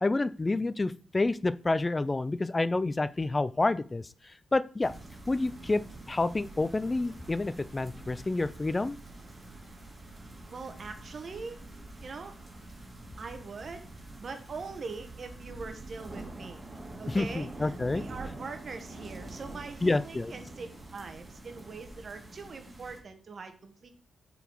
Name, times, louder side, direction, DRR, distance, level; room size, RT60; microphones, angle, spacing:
voice 1, 0.0-4.9 5.3-5.8 6.1-9.0 17.1-18.0 19.8-20.3, left 2 dB, 20° left, 15 dB, 0.3 m, -29 dB
sound 1, 4.8-23.0, right 2 dB, 15° right, 2.0 m, -46 dB
voice 2, 10.5-11.6 12.0-12.4 13.2-13.9 14.2-16.6 17.0-23.9, right 4 dB, 45° right, 7 dB, 1.0 m, -42 dB
6.9 x 3.9 x 4.5 m, 0.40 s
cardioid pair, 115°, 0 cm